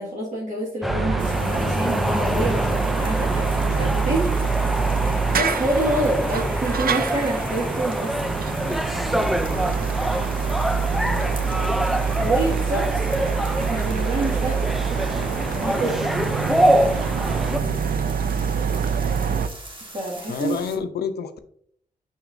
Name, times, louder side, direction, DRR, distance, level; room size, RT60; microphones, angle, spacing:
voice 1, 0.0-4.6 5.3-8.1 12.2-13.1 13.7-16.0 19.9-20.6, right 1 dB, 45° right, -6 dB, 1.8 m, -27 dB
sound 1, 0.8-17.6, equal, ahead, 0.3 m, -25 dB
sound 2, 0.9-19.5, right 6 dB, 65° right, 0.5 m, -26 dB
sound 3, 1.2-20.8, right 2 dB, 30° right, 1.4 m, -42 dB
voice 2, 10.7-12.3 17.6-17.9 20.3-21.4, left 6 dB, 90° left, 9 dB, 0.5 m, -32 dB
6.2 x 6.0 x 2.5 m, 0.64 s
cardioid pair, 75°, 16 cm